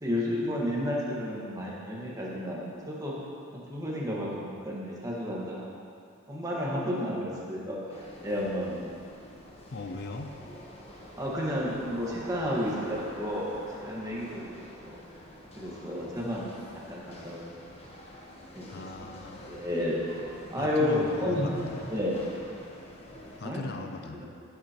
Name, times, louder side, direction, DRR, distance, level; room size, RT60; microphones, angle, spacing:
voice 1, 0.0-3.1 3.5-5.7 6.3-7.8 8.2-8.8 11.2-13.5 13.8-14.4 14.8-15.0 15.5-16.6 16.9-17.5 18.5-18.6 19.0-19.1 19.5-20.0 20.5-21.5 21.9-22.2 23.4-23.6 24.0-24.2, left 1 dB, 15° right, -5 dB, 1.5 m, -31 dB
sound 1, 7.9-23.4, left 1 dB, 30° left, 1.1 m, -48 dB
Bicycle, 8.9-16.7, right 1 dB, 60° right, 2.0 m, -48 dB
voice 2, 9.7-10.3 18.7-19.6 20.6-21.9 23.4-24.2, left 3 dB, 50° left, 5 dB, 0.5 m, -39 dB
13.0 x 8.1 x 3.0 m, 2.4 s
head